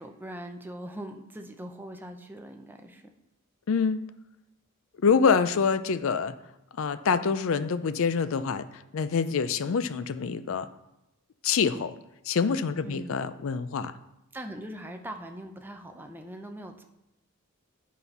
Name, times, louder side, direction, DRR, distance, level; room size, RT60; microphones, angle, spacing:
voice 1, 0.0-3.1 12.8-13.1 14.3-16.8, right 1 dB, 10° right, 5 dB, 0.6 m, -41 dB
voice 2, 3.7-4.0 5.0-6.3 6.8-8.7 8.9-10.7 11.4-11.9 12.3-13.9, left 5 dB, 65° left, 13 dB, 0.4 m, -26 dB
9.3 x 4.2 x 5.4 m, 0.91 s
head